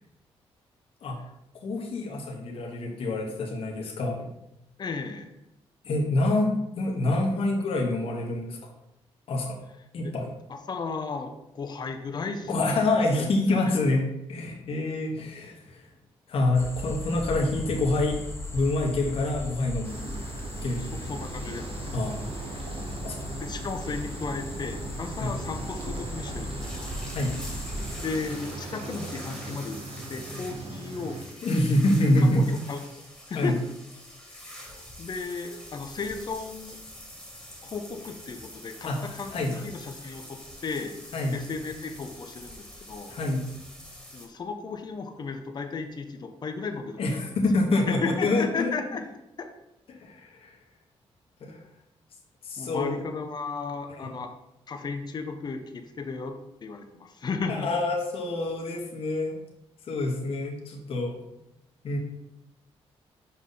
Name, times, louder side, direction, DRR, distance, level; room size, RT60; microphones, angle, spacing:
voice 1, 1.6-4.3 5.8-8.6 9.3-9.6 9.9-10.3 12.5-14.0 14.3-15.8 16.3-18.2 18.5-20.1 20.6-20.8 21.9-22.2 23.0-23.2 25.2-25.3 27.1-27.4 31.4-32.6 33.3-33.5 38.8-39.5 41.1-41.4 43.1-43.5 47.0-48.8 50.0-50.5 51.4-51.6 52.4-53.0 54.0-54.1 57.5-59.4 59.9-61.2 61.8-62.0, left 2 dB, 60° left, -1 dB, 1.1 m, -26 dB
voice 2, 4.8-5.3 10.0-10.1 10.5-13.8 20.8-21.9 23.4-26.9 28.0-29.8 30.1-31.2 32.2-33.0 33.3-33.6 35.0-36.8 37.6-41.0 41.3-43.1 44.1-47.3 47.9-49.0 49.4-49.5 52.6-54.3 54.7-57.7 61.2-61.3, left 4 dB, 40° left, 6 dB, 0.7 m, -35 dB
sound 1, 16.5-28.1, left 1 dB, 25° left, 1.1 m, -37 dB
sound 2, 19.8-31.3, right 3 dB, 60° right, 1.1 m, -39 dB
sound 3, 26.6-44.3, left 1 dB, 5° left, 1.9 m, -45 dB
5.6 x 4.9 x 4.0 m, 0.86 s
cardioid pair, 90°, 11 cm